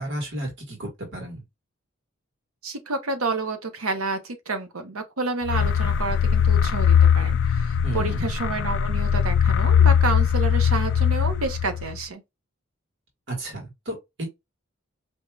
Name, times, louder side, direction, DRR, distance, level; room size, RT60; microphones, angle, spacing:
voice 1, 0.0-1.4 7.8-8.3 13.3-14.3, right 1 dB, 60° right, 1.5 m, -33 dB
voice 2, 2.6-12.2, right 3 dB, 90° right, 0.9 m, -29 dB
sound 1, 5.4-12.0, left 8 dB, 55° left, 0.3 m, -20 dB
4.5 x 2.7 x 2.3 m
head